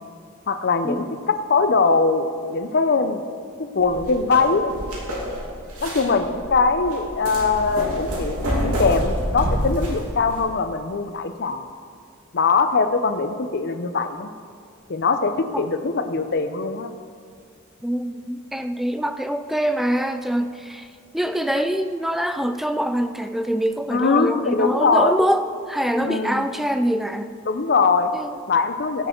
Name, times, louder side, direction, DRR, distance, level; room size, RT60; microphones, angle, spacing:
voice 1, 0.5-3.2 3.6-4.7 5.8-11.7 12.3-14.3 14.9-16.9 23.9-25.1 26.0-26.5 27.5-28.1 28.5-29.1, left 4 dB, 50° left, 9 dB, 0.6 m, -21 dB
sound 1, 3.8-10.4, equal, 90° right, 2.8 m, -27 dB
voice 2, 17.8-20.9 21.1-27.3 28.1-28.4, equal, ahead, 9 dB, 0.3 m, -24 dB
15.5 x 6.7 x 4.5 m, 2.2 s
head